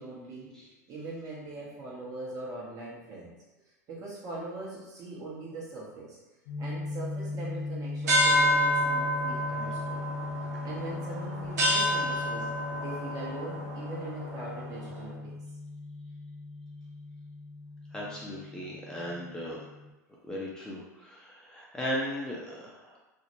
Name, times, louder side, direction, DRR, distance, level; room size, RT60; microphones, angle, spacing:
voice 1, 0.0-3.4 3.9-6.2 6.6-10.0 10.6-12.5 12.8-15.3, right 2 dB, 40° right, -5 dB, 0.9 m, -41 dB
sound 1, 6.5-19.9, left 2 dB, 60° left, 0.5 m, -39 dB
sound 2, 8.1-14.9, equal, 70° right, 0.7 m, -29 dB
voice 2, 17.9-19.6 20.2-23.0, equal, 5° left, -5 dB, 0.5 m, -37 dB
2.4 x 2.0 x 2.8 m, 1.1 s
hypercardioid pair, 90°, 9 cm